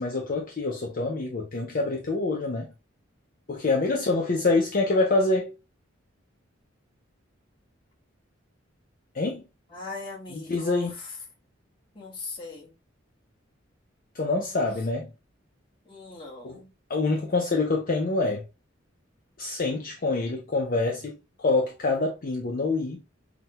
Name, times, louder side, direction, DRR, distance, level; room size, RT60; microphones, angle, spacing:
voice 1, 0.0-2.7 3.5-5.5 9.1-9.4 10.3-10.9 14.1-15.1 16.4-16.6 16.9-18.4 19.4-23.0, left 3 dB, 45° left, 0.5 m, -26 dB
voice 2, 9.7-11.1 11.9-12.7 15.9-16.7, left 3 dB, 25° left, 1.3 m, -40 dB
5.8 x 2.2 x 2.8 m
head